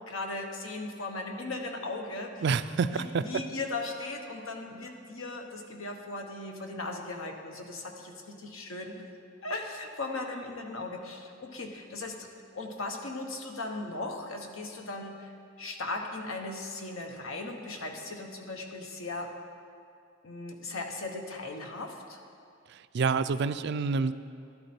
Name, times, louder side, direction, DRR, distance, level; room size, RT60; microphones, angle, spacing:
voice 1, 0.1-2.4 2.9-9.0 9.4-12.3 12.5-15.3 15.6-19.3 20.2-22.2, left 2 dB, 80° left, 3 dB, 1.2 m, -37 dB
voice 2, 2.4-3.2 22.7-24.1, right 5 dB, 55° right, 12 dB, 0.4 m, -28 dB
11.5 x 11.0 x 4.4 m, 2.4 s
head